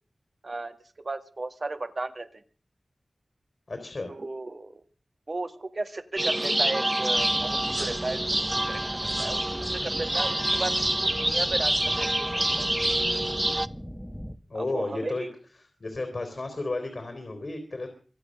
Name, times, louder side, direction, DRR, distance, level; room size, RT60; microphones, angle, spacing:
voice 1, 0.4-0.8 1.0-2.4 4.1-4.8 5.3-8.2 8.7-12.7 14.5-15.3, right 2 dB, 60° right, 9 dB, 1.9 m, -35 dB
voice 2, 3.7-4.1 14.5-15.3 15.6-17.9, left 2 dB, 65° left, 6 dB, 3.7 m, -33 dB
sound 1, 6.2-13.7, right 1 dB, 25° right, 0.8 m, -27 dB
sound 2, 7.1-14.4, equal, 5° left, 1.5 m, -40 dB
25.0 x 8.7 x 6.6 m, 0.42 s
cardioid pair, 40°, 0 cm